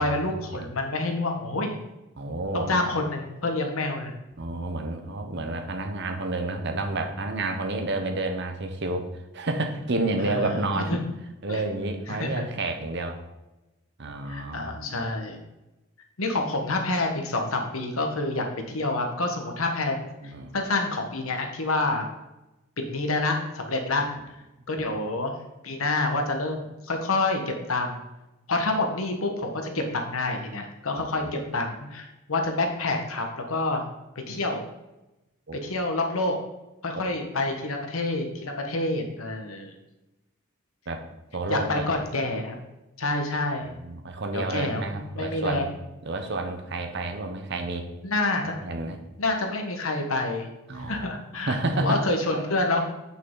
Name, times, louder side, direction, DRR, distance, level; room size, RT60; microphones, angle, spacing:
voice 1, 0.0-1.8 2.5-4.1 10.2-11.0 11.5-11.6 12.1-12.5 14.3-15.4 16.2-22.1 22.8-24.0 24.7-25.3 25.6-28.0 28.5-33.8 34.3-34.6 35.6-36.4 36.8-39.7 41.5-42.6 43.0-43.7 44.3-45.7 48.0-48.6 49.2-50.5 50.9-52.8, left 2 dB, 80° left, 4 dB, 1.3 m, -28 dB
voice 2, 2.2-2.8 4.4-9.0 9.3-10.9 11.4-13.2 14.0-15.0 20.2-20.5 24.2-24.3 30.9-31.3 35.5-35.6 36.9-37.1 40.9-41.0 41.3-41.8 43.6-45.8 46.0-47.9 48.6-49.0 50.7-51.1 51.3-52.0, right 2 dB, 55° right, 5 dB, 0.9 m, -30 dB
8.5 x 5.8 x 3.9 m, 0.99 s
head